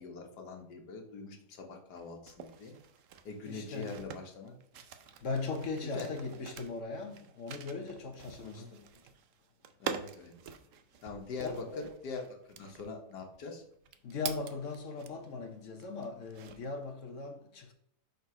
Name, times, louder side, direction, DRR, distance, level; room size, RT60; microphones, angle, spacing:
voice 1, 0.0-2.7 3.2-4.5 5.8-6.1 8.4-8.7 9.8-10.3 11.0-12.2 12.5-13.6, left 4 dB, 85° left, 1.7 m, -43 dB
sound 1, 2.0-15.4 15.8-16.8, right 7 dB, 65° right, 0.8 m, -46 dB
voice 2, 3.5-3.9 5.2-8.8 11.4-11.9 14.0-17.7, left 4 dB, 55° left, 1.1 m, -39 dB
6.0 x 4.0 x 4.8 m
omnidirectional pair, 1.7 m